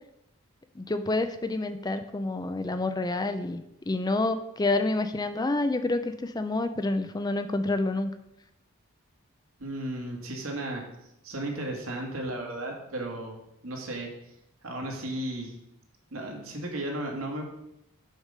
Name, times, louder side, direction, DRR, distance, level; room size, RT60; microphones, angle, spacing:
voice 1, 0.8-8.1, left 2 dB, 20° left, 10 dB, 0.4 m, -28 dB
voice 2, 9.6-10.8 11.2-13.4 13.6-14.1 14.6-15.5 16.1-17.5, right 1 dB, 80° right, 0 dB, 1.9 m, -34 dB
6.5 x 4.9 x 6.6 m, 0.83 s
head